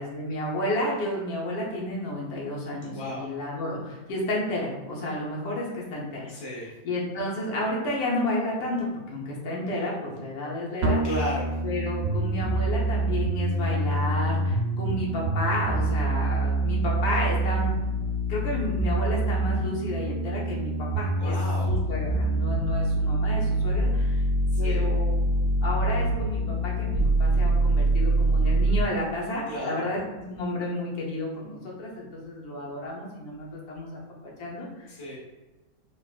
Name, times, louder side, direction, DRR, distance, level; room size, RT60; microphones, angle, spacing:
voice 1, 0.0-6.3 6.8-11.0 11.6-17.7 18.3-21.3 21.7-24.2 24.6-25.1 25.6-30.0 30.3-34.0 34.4-34.9, left 1 dB, 85° left, -4 dB, 1.3 m, -31 dB
voice 2, 2.9-3.3 6.3-6.7 11.0-11.5 21.2-21.8 24.5-24.9 29.5-29.9 34.9-35.2, equal, 20° left, -6 dB, 0.8 m, -34 dB
sound 1, 10.8-28.8, right 2 dB, 65° right, 0.9 m, -25 dB
3.3 x 2.4 x 2.4 m, 1.1 s
omnidirectional pair, 1.6 m